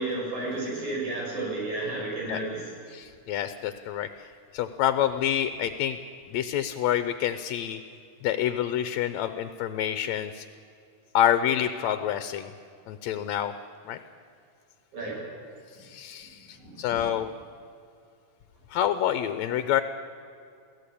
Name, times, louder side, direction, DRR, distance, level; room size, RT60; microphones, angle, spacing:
voice 1, 0.0-2.7 14.9-15.2 16.6-16.8, right 2 dB, 80° right, -4 dB, 8.5 m, -32 dB
voice 2, 2.9-6.0 6.3-7.8 8.2-10.5 11.1-12.5 12.9-13.5 13.9-14.0 15.8-17.3 18.7-19.8, left 11 dB, 75° left, 10 dB, 2.0 m, -27 dB
22.5 x 16.0 x 8.5 m, 2.4 s
omnidirectional pair, 3.4 m